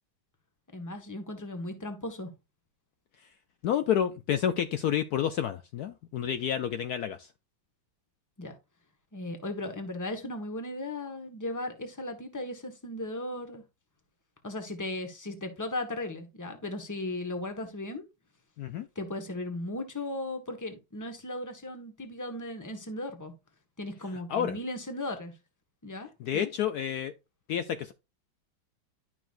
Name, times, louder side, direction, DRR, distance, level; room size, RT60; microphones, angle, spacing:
voice 1, 0.7-2.3 8.4-8.5 9.1-13.6 14.4-18.1 18.9-23.3 23.8-25.3 25.8-26.5, left 1 dB, 10° left, 1.2 m, -36 dB
voice 2, 3.6-7.3 18.6-18.9 24.3-24.6 26.2-27.1 27.5-27.9, left 9 dB, 70° left, 1.0 m, -29 dB
11.5 x 6.0 x 2.6 m
omnidirectional pair, 2.0 m